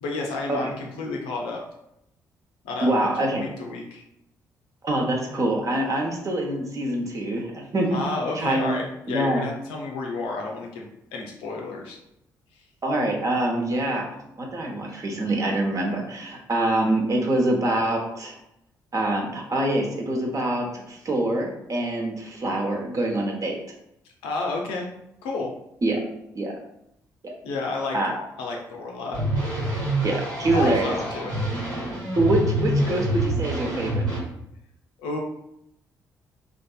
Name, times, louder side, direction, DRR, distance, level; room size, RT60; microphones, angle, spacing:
voice 1, 0.0-1.6 2.6-4.0 7.9-10.8 11.1-12.0 24.2-24.9 25.2-25.5 27.4-28.0 28.4-29.2 30.5-31.4 35.0-35.2, left 3 dB, 75° left, 0 dB, 0.5 m, -31 dB
voice 2, 2.8-3.4 4.8-8.0 8.3-8.8 9.1-9.5 12.8-14.0 14.4-18.4 18.9-23.6 25.8-26.0 26.3-26.6 27.9-28.2 30.0-31.0 31.2-31.3 32.2-34.0, right 1 dB, 40° right, 0 dB, 0.7 m, -25 dB
sound 1, 29.1-34.2, right 1 dB, 75° right, 1.0 m, -26 dB
2.6 x 2.4 x 2.3 m, 0.80 s
hypercardioid pair, 40°, 9 cm